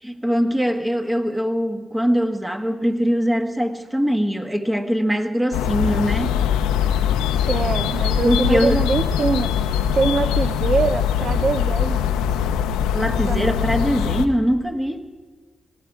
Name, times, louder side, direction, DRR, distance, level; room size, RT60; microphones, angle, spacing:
voice 1, 0.0-6.4 8.2-8.8 12.9-15.0, equal, 15° right, 7 dB, 1.4 m, -22 dB
sound 1, 5.5-14.3, left 8 dB, 90° left, 0.6 m, -22 dB
voice 2, 7.5-9.5 9.9-12.2 13.2-13.5, right 4 dB, 55° right, 12 dB, 0.6 m, -23 dB
18.5 x 15.0 x 4.8 m, 1.4 s
supercardioid pair, 45°, 0 cm